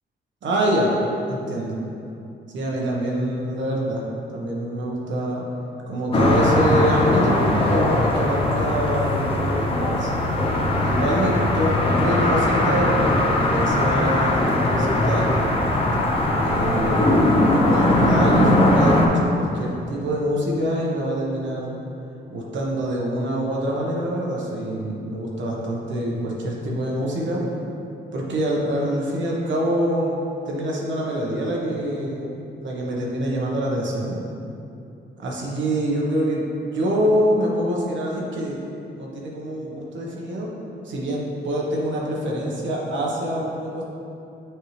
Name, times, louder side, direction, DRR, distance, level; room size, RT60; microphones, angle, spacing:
voice 1, 0.4-0.9 1.3-1.8 2.5-4.0 4.3-5.4 5.9-10.1 10.8-15.5 16.4-21.7 22.3-27.4 28.1-30.2 30.5-32.3 32.6-34.2 35.2-36.4 36.7-38.6 38.9-40.5 40.8-43.8, equal, 75° right, -3 dB, 1.2 m, -25 dB
sound 1, 6.1-19.1, left 1 dB, 30° left, 0.8 m, -20 dB
7.8 x 4.7 x 3.3 m, 2.7 s
cardioid pair, 125°, 19 cm